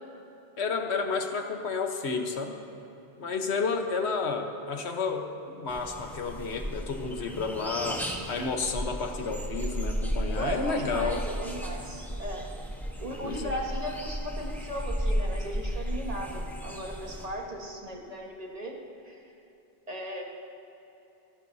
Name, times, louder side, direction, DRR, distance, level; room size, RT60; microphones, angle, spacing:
voice 1, 0.6-2.6 3.2-11.2 13.2-13.5, left 4 dB, 85° left, 4 dB, 1.4 m, -31 dB
sound 1, 5.7-17.3, equal, ahead, 1.2 m, -34 dB
voice 2, 10.4-12.4 13.0-18.7 19.0-19.2 19.9-20.2, equal, 35° right, 0 dB, 1.5 m, -37 dB
28.0 x 11.5 x 2.7 m, 3.0 s
omnidirectional pair, 1.1 m